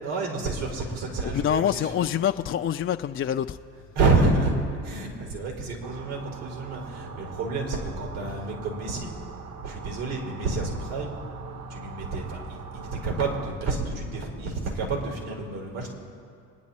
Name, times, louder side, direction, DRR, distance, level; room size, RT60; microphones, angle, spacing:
voice 1, 0.0-2.0 3.9-4.5 4.8-9.1 9.6-11.2 11.7-15.9, right 3 dB, 75° right, -2 dB, 4.9 m, -28 dB
voice 2, 1.2-3.6, left 9 dB, 35° left, 6 dB, 0.5 m, -26 dB
sound 1, 5.8-13.5, right 5 dB, 45° right, 1.3 m, -41 dB
26.5 x 10.5 x 4.3 m, 2.5 s
hypercardioid pair, 65°, 38 cm